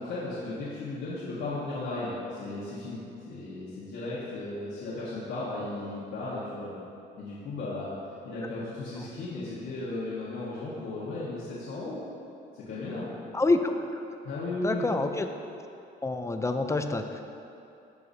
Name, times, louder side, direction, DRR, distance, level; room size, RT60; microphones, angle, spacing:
voice 1, 0.0-6.7 7.2-7.9 8.2-12.0 12.5-13.1 14.2-14.8, left 2 dB, 85° left, -10 dB, 1.5 m, -35 dB
voice 2, 13.3-14.1 14.6-15.3 16.0-17.2, left 2 dB, 15° left, 6 dB, 0.5 m, -27 dB
13.5 x 4.8 x 2.8 m, 2.7 s
cardioid pair, 90°, 20 cm